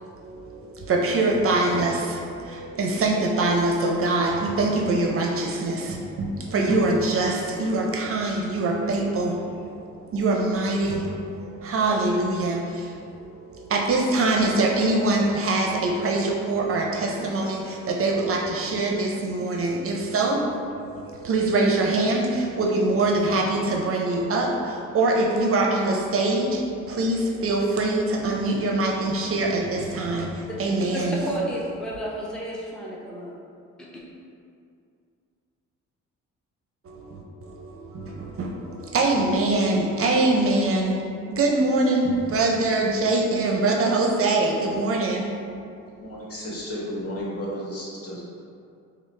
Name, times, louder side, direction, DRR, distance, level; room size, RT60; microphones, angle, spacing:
voice 1, 0.0-31.2 36.8-45.3 45.5-45.6, right 2 dB, 50° right, 0 dB, 0.6 m, -24 dB
voice 2, 30.9-33.3 33.9-34.0, right 1 dB, ahead, -5 dB, 0.6 m, -31 dB
voice 3, 46.0-48.2, equal, 50° left, -5 dB, 1.2 m, -33 dB
5.5 x 2.0 x 3.2 m, 2.4 s
cardioid pair, 90°, 30 cm